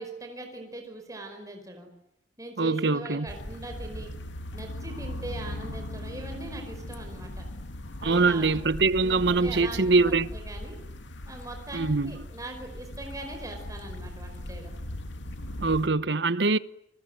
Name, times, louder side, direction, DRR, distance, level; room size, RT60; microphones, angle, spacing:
voice 1, 0.0-1.9 2.4-4.2 4.5-7.5 8.0-8.6 9.0-10.8 11.3-14.7, right 2 dB, 20° right, 5.2 m, -41 dB
voice 2, 2.6-3.3 8.0-10.3 11.7-12.1 15.6-16.6, right 3 dB, 65° right, 1.0 m, -23 dB
sound 1, 3.3-15.9, left 1 dB, 80° left, 2.6 m, -39 dB
29.5 x 21.0 x 9.2 m
head